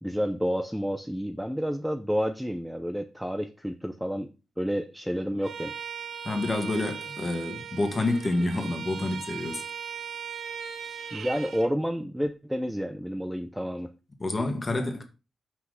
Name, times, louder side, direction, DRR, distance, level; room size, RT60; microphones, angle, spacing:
voice 1, 0.0-4.3 4.6-5.7 10.8-13.9, equal, ahead, 0.6 m, -30 dB
Bowed string instrument, 5.4-11.7, right 7 dB, 55° right, 1.1 m, -38 dB
voice 2, 6.2-9.7 14.2-15.0, left 2 dB, 20° left, 1.7 m, -28 dB
6.1 x 5.8 x 6.4 m
wide cardioid pair, 140°, 0 cm